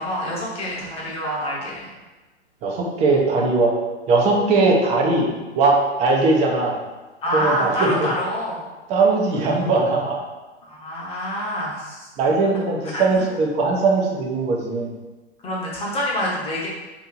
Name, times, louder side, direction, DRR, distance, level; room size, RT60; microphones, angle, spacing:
voice 1, 0.0-1.9 3.3-3.4 7.2-8.6 9.5-9.8 10.7-12.1 12.9-13.2 15.4-16.7, equal, 15° left, -4 dB, 0.9 m, -26 dB
voice 2, 2.6-3.7 4.1-5.3 5.5-6.8 7.3-8.1 8.9-10.2 12.2-14.9, right 3 dB, 20° right, -1 dB, 0.5 m, -19 dB
2.9 x 2.6 x 3.7 m, 1.2 s
hypercardioid pair, 115°, 34 cm